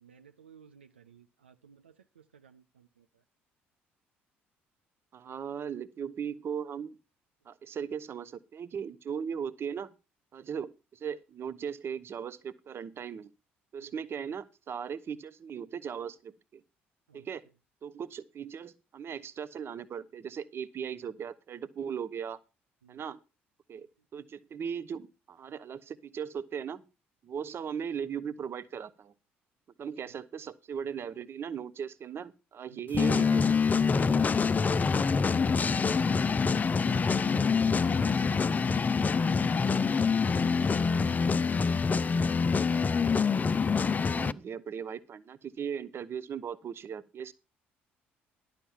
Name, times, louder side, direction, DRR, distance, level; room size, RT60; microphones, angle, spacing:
voice 1, 0.0-3.0 17.1-17.2 22.8-23.0 32.7-32.8, right 7 dB, 85° right, 8 dB, 0.5 m, -58 dB
voice 2, 5.1-7.0 7.5-9.9 10.3-13.3 13.7-16.6 17.1-17.4 17.8-22.4 22.9-23.2 23.7-23.9 24.1-26.8 27.2-29.1 29.8-33.6 44.0-47.3, right 7 dB, 45° right, 16 dB, 0.7 m, -38 dB
sound 1, 32.9-44.3, left 5 dB, 30° left, 0.5 m, -26 dB
11.5 x 5.8 x 7.2 m, 0.29 s
figure-of-eight pair, 50°, 6 cm